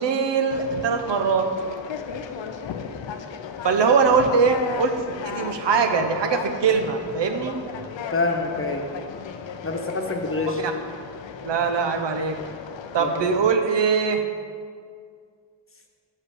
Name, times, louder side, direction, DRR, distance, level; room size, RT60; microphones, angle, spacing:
voice 1, 0.0-1.5 3.6-7.6 10.6-10.7 11.4-12.4 12.9-14.2, right 5 dB, 75° right, 6 dB, 0.8 m, -22 dB
Conversation, 0.5-13.6, left 6 dB, 85° left, 0.6 m, -35 dB
voice 2, 8.1-8.9 9.6-10.6 13.0-13.3, left 3 dB, 30° left, 2 dB, 1.0 m, -26 dB
6.6 x 5.5 x 6.5 m, 2.1 s
cardioid pair, 65°, 43 cm